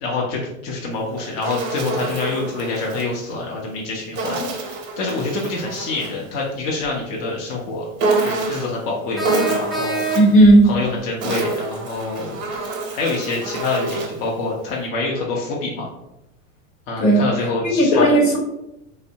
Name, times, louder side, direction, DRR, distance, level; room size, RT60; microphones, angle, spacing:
voice 1, 0.0-7.9 8.1-10.0 10.6-15.9 16.9-18.1, left 3 dB, 50° left, -2 dB, 0.7 m, -26 dB
Insect, 0.9-3.1 4.2-6.2 8.0-8.8 9.2-10.4 11.0-14.3, right 3 dB, 40° right, 0.7 m, -27 dB
sound 1, 9.2-10.6, right 3 dB, ahead, 0.4 m, -26 dB
voice 2, 10.1-10.7 17.0-17.3 17.6-18.4, right 1 dB, 75° left, -1 dB, 1.0 m, -13 dB
2.6 x 2.1 x 2.7 m, 0.88 s
hypercardioid pair, 110°, 40 cm